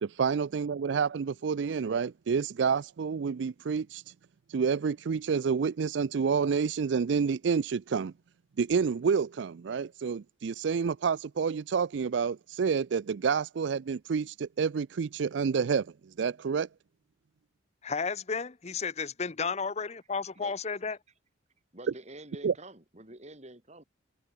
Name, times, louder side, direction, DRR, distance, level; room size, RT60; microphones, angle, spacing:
voice 1, 0.0-4.0 4.5-8.1 8.6-16.7 22.4-22.5, right 6 dB, 70° right, 0.4 m, -29 dB
voice 2, 17.8-21.0, left 5 dB, 35° left, 0.8 m, -33 dB
voice 3, 21.7-23.8, right 1 dB, 35° right, 4.7 m, -47 dB
head